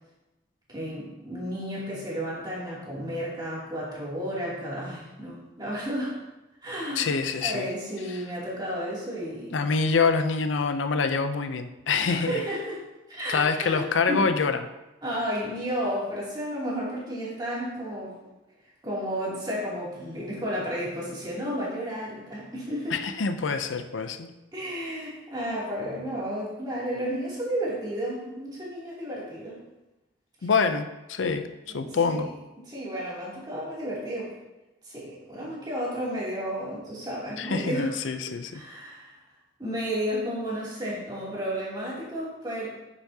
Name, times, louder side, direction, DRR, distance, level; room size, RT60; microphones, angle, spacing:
voice 1, 0.7-6.2 6.6-7.1 7.4-9.7 12.0-12.8 13.1-14.3 15.0-18.2 18.8-23.0 24.5-29.6 30.4-30.5 31.7-32.3 32.6-34.3 34.8-37.9 38.5-39.2 39.6-42.7, equal, 20° right, -7 dB, 2.7 m, -32 dB
voice 2, 7.0-7.7 9.5-12.3 13.3-14.6 22.9-24.3 30.4-31.5 31.7-32.3 37.4-38.6, left 4 dB, 85° left, 9 dB, 0.5 m, -26 dB
9.4 x 7.1 x 2.8 m, 1.0 s
head